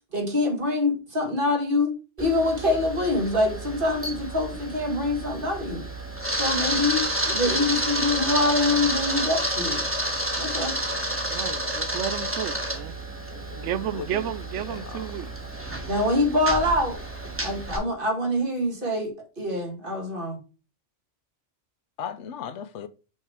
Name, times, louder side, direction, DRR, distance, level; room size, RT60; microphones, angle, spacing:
voice 1, 0.1-5.9 6.4-9.8 10.4-10.8 15.9-17.0 17.4-20.4, left 2 dB, 50° right, 2.0 m, -25 dB
Camera, 2.2-17.8, right 1 dB, 10° right, 1.3 m, -30 dB
voice 2, 11.1-12.9 13.6-15.3, right 11 dB, 90° right, 0.9 m, -32 dB
voice 3, 13.3-14.3 14.6-15.0 22.0-22.9, left 8 dB, 80° left, 1.0 m, -37 dB
5.7 x 4.7 x 4.5 m
omnidirectional pair, 1.2 m